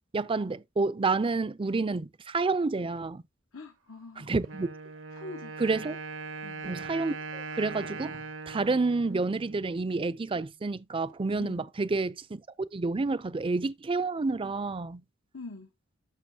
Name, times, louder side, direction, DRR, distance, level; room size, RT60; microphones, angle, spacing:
voice 1, 0.1-3.2 4.2-4.7 5.6-6.0 6.6-8.2 8.5-12.4 12.7-15.0, right 3 dB, 25° right, 0.5 m, -29 dB
voice 2, 3.5-4.4 5.1-5.6 6.4-6.7 11.4-11.6 15.3-15.7, left 3 dB, 85° left, 1.3 m, -44 dB
Wind instrument woodwind instrument, 4.4-10.2, right 4 dB, 80° right, 0.9 m, -41 dB
11.5 x 6.6 x 2.8 m
head